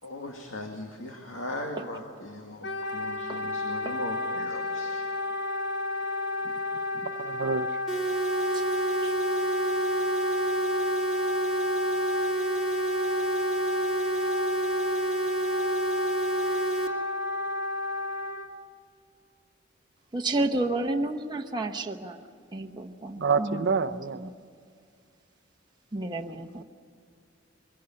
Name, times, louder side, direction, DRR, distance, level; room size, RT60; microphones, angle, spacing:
voice 1, 0.0-5.0, left 1 dB, 85° left, 2 dB, 2.2 m, -38 dB
Wind instrument woodwind instrument, 2.6-18.5, left 2 dB, 60° left, 1.4 m, -32 dB
voice 2, 7.2-7.7 23.2-24.3, right 5 dB, 60° right, 12 dB, 0.7 m, -27 dB
sound 1, 7.9-16.9, right 1 dB, ahead, 2.5 m, -29 dB
voice 3, 20.1-22.2 22.5-24.3 25.9-26.6, right 2 dB, 20° right, 2 dB, 1.0 m, -31 dB
23.5 x 17.0 x 8.9 m, 2.2 s
head